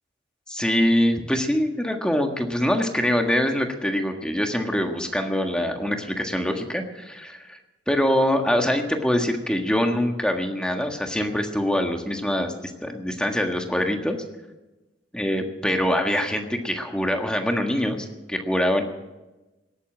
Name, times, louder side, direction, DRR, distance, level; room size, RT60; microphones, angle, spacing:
voice 1, 0.5-7.6 7.9-14.2 15.1-18.8, equal, 5° left, 4 dB, 1.6 m, -24 dB
18.0 x 8.5 x 8.9 m, 1.1 s
head